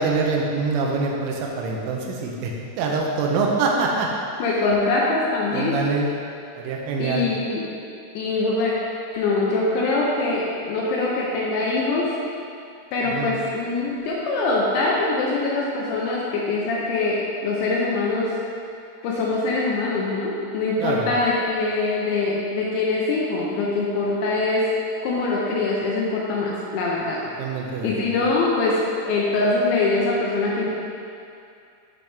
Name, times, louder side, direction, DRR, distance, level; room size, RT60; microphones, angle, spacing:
voice 1, 0.0-4.1 5.5-6.1 6.6-7.3 13.0-13.4 20.8-21.1 27.4-27.9, right 4 dB, 80° right, -1 dB, 3.2 m, -24 dB
voice 2, 4.4-5.7 7.0-7.6 8.2-8.7 9.1-12.1 12.9-18.3 19.0-24.6 25.0-27.2 27.8-30.7, left 3 dB, 80° left, -4 dB, 2.8 m, -23 dB
12.0 x 4.1 x 3.4 m, 2.5 s
omnidirectional pair, 5.7 m